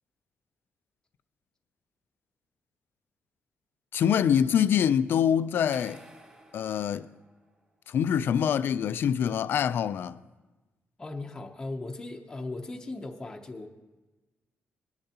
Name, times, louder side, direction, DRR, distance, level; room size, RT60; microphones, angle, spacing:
voice 1, 3.9-6.0 6.5-7.1 7.9-10.2, left 8 dB, 55° left, 0.4 m, -25 dB
sound 1, 5.7-7.8, right 2 dB, 25° right, 2.8 m, -53 dB
voice 2, 11.0-13.7, left 2 dB, 15° left, 0.7 m, -38 dB
20.0 x 10.5 x 2.9 m
wide cardioid pair, 175°, 4 cm